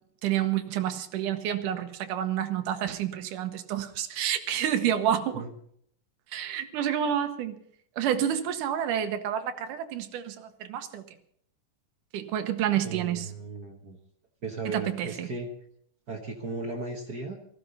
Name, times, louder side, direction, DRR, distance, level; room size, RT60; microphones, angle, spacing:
voice 1, 0.2-5.4 6.3-7.6 8.0-11.0 12.1-13.3 14.7-15.3, right 10 dB, 75° right, 8 dB, 2.5 m, -29 dB
voice 2, 12.8-14.0 14.4-15.5 16.1-17.4, right 3 dB, 50° right, 2 dB, 1.2 m, -36 dB
18.5 x 15.0 x 4.1 m, 0.67 s
omnidirectional pair, 3.7 m